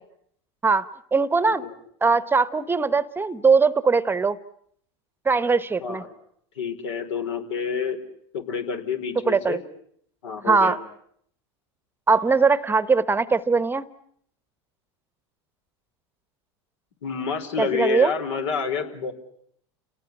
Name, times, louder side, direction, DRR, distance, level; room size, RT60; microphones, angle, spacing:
voice 1, 0.6-1.6 2.0-4.4 5.2-6.0 9.3-9.6 10.4-10.8 12.1-13.8 17.6-18.1, right 4 dB, 15° right, 15 dB, 1.0 m, -21 dB
voice 2, 6.5-8.0 8.3-9.6 10.2-10.8 17.0-19.1, left 6 dB, 75° left, 6 dB, 4.8 m, -28 dB
29.5 x 18.5 x 10.0 m, 0.69 s
hypercardioid pair, 100°, 15 cm